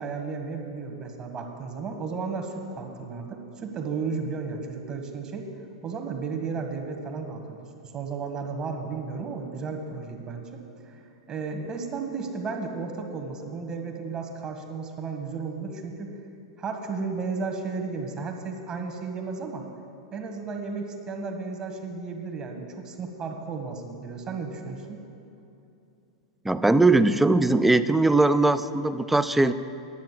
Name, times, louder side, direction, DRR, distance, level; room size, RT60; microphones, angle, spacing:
voice 1, 0.0-5.5 5.8-7.6 7.9-10.6 10.9-16.1 16.6-19.6 20.1-25.0, right 4 dB, 30° right, 4 dB, 1.6 m, -34 dB
voice 2, 26.4-29.5, right 2 dB, 5° right, 13 dB, 0.4 m, -20 dB
10.5 x 7.6 x 7.5 m, 2.7 s
hypercardioid pair, 100°, 3 cm